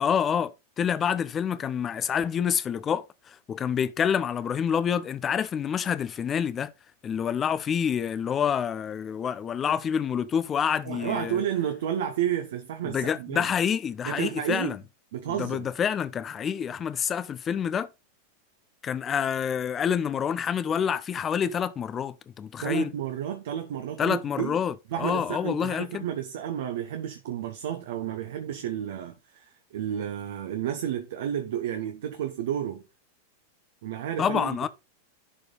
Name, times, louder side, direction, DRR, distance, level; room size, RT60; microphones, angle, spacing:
voice 1, 0.0-6.7 7.0-11.4 12.8-14.8 15.3-17.9 18.8-22.9 24.0-26.0 34.2-34.7, left 8 dB, 25° left, 0.7 m, -27 dB
voice 2, 10.8-13.5 14.0-14.8 15.1-15.7 22.6-24.6 24.9-32.8 33.8-34.7, right 10 dB, 55° right, 1.1 m, -31 dB
11.5 x 4.9 x 3.9 m
figure-of-eight pair, 90°, 0 cm